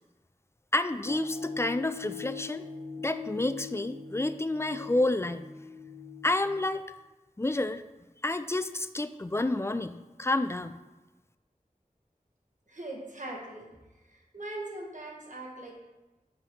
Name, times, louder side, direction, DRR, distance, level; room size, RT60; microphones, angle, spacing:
voice 1, 0.7-2.7 3.0-5.4 6.2-6.8 7.4-7.8 8.2-10.8, left 2 dB, 20° left, 11 dB, 0.3 m, -29 dB
sound 1, 1.1-6.6, left 6 dB, 60° left, 1.2 m, -42 dB
voice 2, 12.7-13.7 14.0-15.7, right 2 dB, 60° right, -1 dB, 1.4 m, -41 dB
7.8 x 3.1 x 5.9 m, 1.1 s
wide cardioid pair, 50°, 15 cm